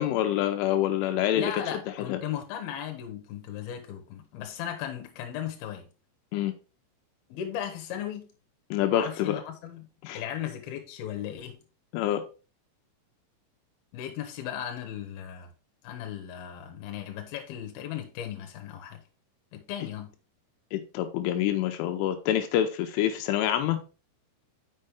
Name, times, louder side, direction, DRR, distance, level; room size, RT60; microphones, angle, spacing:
voice 1, 0.0-1.8 2.1-2.2 6.3-6.5 8.7-9.4 10.0-10.2 11.9-12.2 20.7-23.8, left 11 dB, 85° left, 3.2 m, -26 dB
voice 2, 1.3-5.9 7.3-8.3 8.9-9.9 10.1-11.6 13.9-15.5 15.8-19.0 19.5-20.1, left 10 dB, 65° left, 2.7 m, -36 dB
6.6 x 6.3 x 3.5 m
omnidirectional pair, 5.6 m